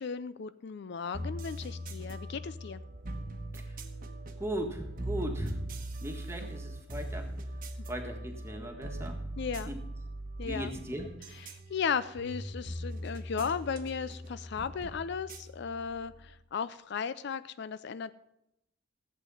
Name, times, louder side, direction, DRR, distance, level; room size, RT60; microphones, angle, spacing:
voice 1, 0.0-2.8 9.4-9.7 10.4-10.7 11.5-18.1, left 6 dB, 55° left, 14 dB, 0.4 m, -35 dB
sound 1, 1.1-16.4, right 1 dB, 40° right, 1.1 m, -40 dB
voice 2, 4.4-5.6 6.0-7.3 7.9-9.2 9.7-9.8 10.4-11.1, right 1 dB, 10° right, 3 dB, 1.6 m, -38 dB
14.5 x 8.3 x 5.5 m, 0.83 s
head